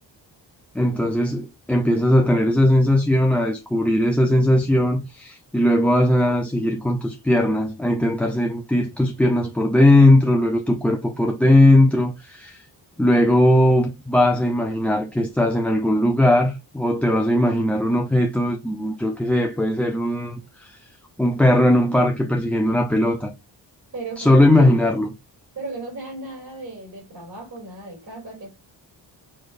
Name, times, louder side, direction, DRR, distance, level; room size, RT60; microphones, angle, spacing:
voice 1, 0.7-12.6 13.0-20.8 21.2-23.3 24.2-25.1, left 1 dB, 5° left, 0.5 m, -19 dB
voice 2, 23.9-24.9 25.5-28.5, right 3 dB, 45° right, 2.8 m, -36 dB
4.9 x 4.2 x 2.5 m
wide cardioid pair, 125°, 43 cm